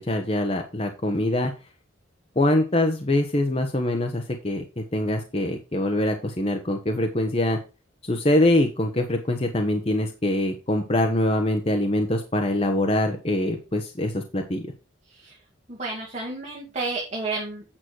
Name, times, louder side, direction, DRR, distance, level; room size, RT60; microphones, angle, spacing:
voice 1, 0.0-1.5 2.4-7.6 8.0-14.7, left 1 dB, 30° left, 4 dB, 1.0 m, -24 dB
voice 2, 15.7-17.6, right 3 dB, 35° right, -3 dB, 2.2 m, -31 dB
8.9 x 6.3 x 4.6 m, 0.31 s
head